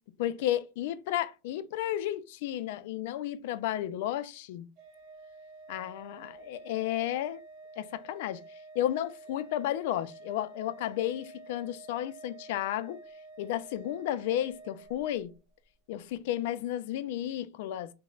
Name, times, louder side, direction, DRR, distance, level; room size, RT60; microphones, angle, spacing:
voice 1, 0.2-4.7 5.7-7.4 7.8-8.4 8.8-13.0 13.4-15.3 15.9-17.9, left 12 dB, 75° left, 0.3 m, -33 dB
Organ, 4.8-15.4, right 3 dB, 55° right, 0.9 m, -50 dB
4.9 x 2.1 x 2.3 m
supercardioid pair, 135°, 0 cm